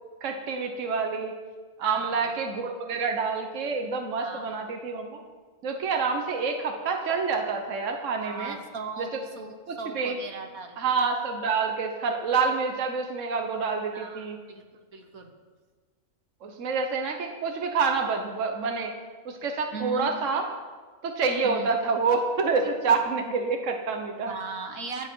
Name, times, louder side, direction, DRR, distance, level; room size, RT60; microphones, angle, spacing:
voice 1, 0.2-1.3 1.8-5.2 5.6-8.6 9.0-9.1 9.7-10.2 10.8-14.4 16.4-18.9 19.2-20.5 21.0-24.3, right 4 dB, 60° right, 4 dB, 1.5 m, -27 dB
voice 2, 1.8-2.3 4.2-4.6 8.2-10.8 13.9-14.7 14.9-15.3 19.7-20.1 21.4-21.7 24.3-25.1, right 4 dB, 75° right, 4 dB, 1.8 m, -38 dB
24.0 x 8.2 x 4.7 m, 1.4 s
omnidirectional pair, 1.5 m